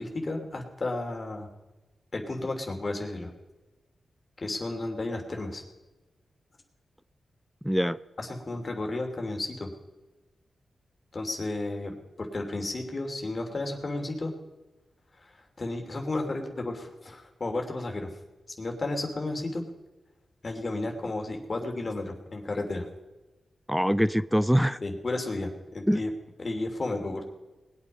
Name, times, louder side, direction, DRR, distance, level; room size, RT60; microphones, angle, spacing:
voice 1, 0.0-1.5 2.1-3.3 4.4-5.6 8.2-9.7 11.1-11.9 12.2-14.3 15.2-18.1 18.6-19.7 20.4-22.9 24.8-26.1 26.4-27.2, left 2 dB, 50° left, 3 dB, 2.9 m, -33 dB
voice 2, 7.6-8.0 23.7-24.8 25.9-26.0, equal, ahead, 17 dB, 0.5 m, -23 dB
20.5 x 8.6 x 5.4 m, 1.1 s
supercardioid pair, 40°, 0 cm